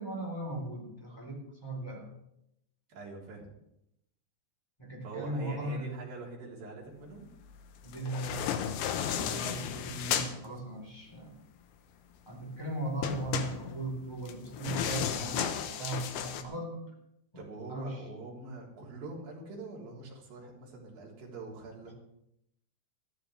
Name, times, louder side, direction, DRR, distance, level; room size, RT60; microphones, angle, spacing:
voice 1, 0.0-2.1 4.8-5.9 7.8-8.7 9.0-11.4 12.2-16.8 17.3-18.0 21.9-22.0, right 1 dB, 5° left, -2 dB, 3.3 m, -38 dB
voice 2, 2.9-3.5 5.0-7.3 17.4-21.9, right 3 dB, 55° right, -4 dB, 5.0 m, -44 dB
sound 1, 7.9-10.3 13.0-16.4, left 9 dB, 75° left, 2.7 m, -34 dB
19.5 x 14.0 x 3.4 m, 0.80 s
omnidirectional pair, 5.1 m